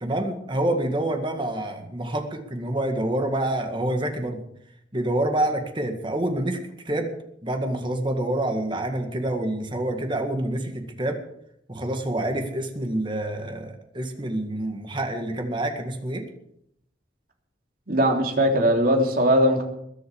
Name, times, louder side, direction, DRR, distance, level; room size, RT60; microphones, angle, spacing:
voice 1, 0.0-4.4 4.9-6.6 6.9-7.1 7.4-11.2 11.7-16.2, right 1 dB, 25° right, 5 dB, 1.9 m, -27 dB
voice 2, 17.9-19.6, equal, 50° right, 2 dB, 3.2 m, -20 dB
21.0 x 8.0 x 7.1 m, 0.75 s
head